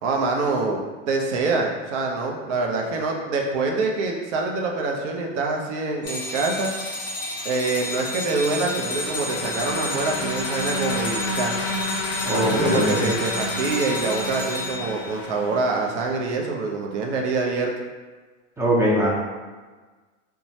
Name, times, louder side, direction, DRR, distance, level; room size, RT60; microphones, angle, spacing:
voice 1, 0.0-6.7 7.4-11.5 12.3-17.7, right 3 dB, 65° right, 0 dB, 0.6 m, -25 dB
sound 1, 6.0-15.1, left 1 dB, 10° left, 0.8 m, -31 dB
sound 2, 7.7-16.3, left 2 dB, 50° left, 0.5 m, -31 dB
voice 2, 12.2-13.1 18.6-19.1, equal, 10° right, -5 dB, 0.4 m, -21 dB
2.6 x 2.3 x 3.0 m, 1.4 s
hypercardioid pair, 120°, 38 cm